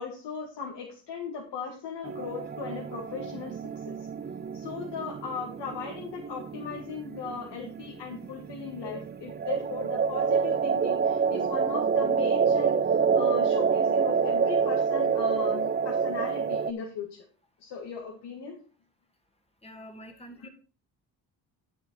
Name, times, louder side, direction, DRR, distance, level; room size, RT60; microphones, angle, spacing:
voice 1, 0.0-4.0 4.5-17.3 17.6-18.6 20.4-20.5, left 5 dB, 65° left, -1 dB, 2.1 m, -38 dB
sound 1, 2.0-16.7, right 6 dB, 25° right, 0.5 m, -27 dB
voice 2, 19.6-20.5, left 2 dB, 15° left, 5 dB, 2.1 m, -44 dB
8.7 x 6.7 x 4.5 m, 0.38 s
cardioid pair, 75°, 43 cm